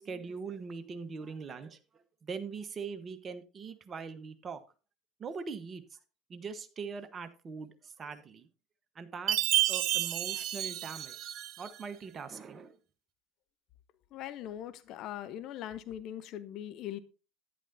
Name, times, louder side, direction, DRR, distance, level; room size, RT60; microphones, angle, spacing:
voice 1, 0.0-1.8 2.2-4.6 5.2-5.8 6.3-8.5 8.9-11.2 11.6-12.8, right 5 dB, 30° right, 1.2 m, -42 dB
Chime, 9.3-11.8, right 14 dB, 50° right, 0.7 m, -30 dB
voice 2, 14.1-17.0, left 11 dB, 50° left, 0.8 m, -41 dB
11.0 x 10.0 x 2.7 m
figure-of-eight pair, 70°, 0 cm